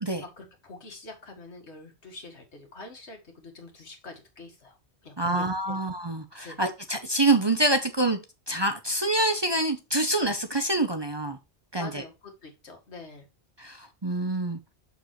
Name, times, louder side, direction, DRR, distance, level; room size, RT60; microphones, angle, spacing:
voice 1, 0.2-4.8 5.0-5.8 6.4-6.6 11.7-13.3, left 3 dB, 80° left, 2.0 m, -45 dB
voice 2, 5.2-8.2 8.5-11.4 11.7-12.0 13.6-14.6, right 2 dB, 30° right, 0.7 m, -26 dB
6.7 x 6.5 x 3.1 m
omnidirectional pair, 1.1 m